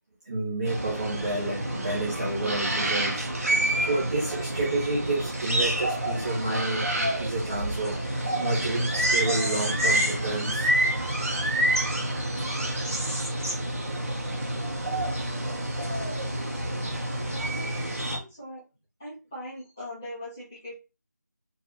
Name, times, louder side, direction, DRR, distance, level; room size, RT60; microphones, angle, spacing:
voice 1, 0.2-10.7, right 2 dB, 25° right, -6 dB, 1.1 m, -30 dB
sound 1, 0.6-18.2, right 1 dB, 45° right, 1.4 m, -28 dB
voice 2, 16.4-16.7 17.4-18.6 19.0-20.7, left 1 dB, 10° left, -11 dB, 0.9 m, -41 dB
4.7 x 2.7 x 3.8 m, 0.28 s
figure-of-eight pair, 175°, 10 cm